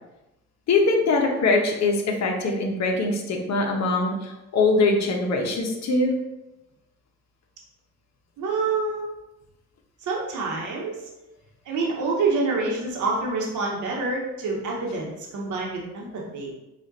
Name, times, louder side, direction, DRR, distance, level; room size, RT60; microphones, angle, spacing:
voice 1, 0.7-6.1, left 3 dB, 60° left, 1 dB, 1.0 m, -22 dB
voice 2, 8.4-9.1 10.0-11.1 11.6-16.5, right 3 dB, 75° right, -2 dB, 1.2 m, -27 dB
4.9 x 2.5 x 4.1 m, 0.96 s
cardioid pair, 90°, 30 cm